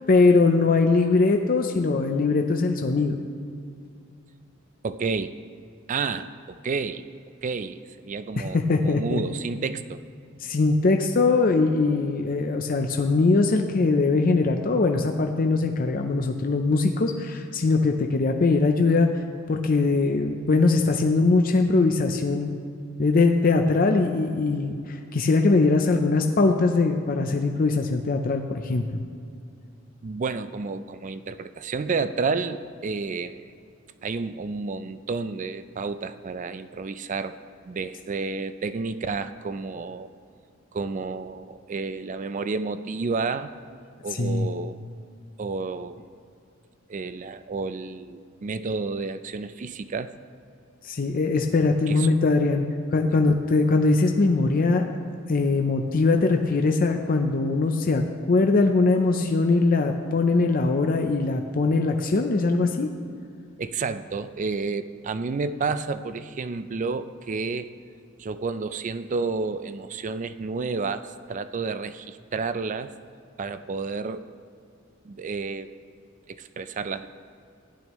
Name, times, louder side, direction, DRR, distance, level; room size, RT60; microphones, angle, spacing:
voice 1, 0.1-3.2 8.4-9.2 10.4-19.1 19.5-22.5 23.0-29.0 44.1-44.5 50.8-52.7 52.9-54.8 55.3-62.9, left 3 dB, 45° left, 4 dB, 0.5 m, -21 dB
voice 2, 4.8-5.3 5.9-7.0 7.4-7.8 8.0-10.0 30.0-33.5 34.0-37.4 37.7-40.1 40.7-43.5 44.0-44.8 45.4-46.0 46.9-50.1 51.9-52.1 53.1-53.2 63.6-67.7 68.2-72.9 73.4-74.3 75.0-75.8 76.3-77.1, right 4 dB, 40° right, 12 dB, 0.4 m, -30 dB
15.5 x 10.5 x 3.1 m, 2.4 s
head